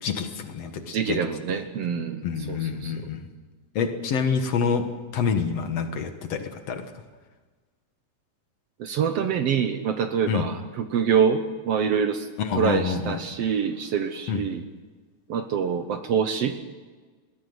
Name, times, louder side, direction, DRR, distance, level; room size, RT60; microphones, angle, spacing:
voice 1, 0.0-1.2 2.2-3.3 3.8-4.9 5.1-6.8 10.3-10.5 12.4-13.2 14.3-14.4, left 6 dB, 60° left, 7 dB, 2.3 m, -27 dB
voice 2, 0.9-2.9 8.8-12.3 12.5-14.6 15.3-16.6, right 7 dB, 65° right, 8 dB, 1.7 m, -25 dB
21.0 x 16.0 x 8.0 m, 1.4 s
omnidirectional pair, 3.5 m